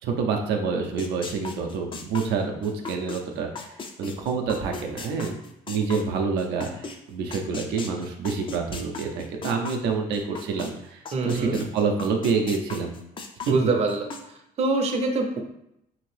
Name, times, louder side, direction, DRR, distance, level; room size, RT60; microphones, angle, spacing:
voice 1, 0.0-3.7 4.0-5.3 5.7-12.9 13.5-13.6, right 5 dB, 90° right, 2 dB, 0.5 m, -27 dB
sound 1, 1.0-7.0 7.3-10.7 11.0-14.2, left 4 dB, 30° left, 0.4 m, -37 dB
voice 2, 11.1-11.6 13.5-14.1 14.6-15.4, right 3 dB, 40° right, 3 dB, 0.5 m, -24 dB
2.8 x 2.6 x 3.2 m, 0.79 s
cardioid pair, 110°, 17 cm